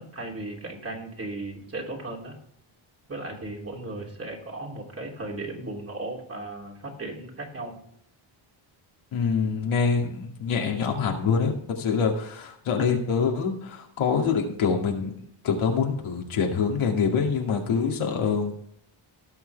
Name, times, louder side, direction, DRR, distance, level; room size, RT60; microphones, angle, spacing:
voice 1, 0.0-2.3 3.1-7.8, right 2 dB, 30° right, 0 dB, 3.1 m, -36 dB
voice 2, 9.1-15.1 15.4-18.6, left 5 dB, 70° left, 1 dB, 2.4 m, -25 dB
17.0 x 6.3 x 3.4 m, 0.70 s
cardioid pair, 115°, 50 cm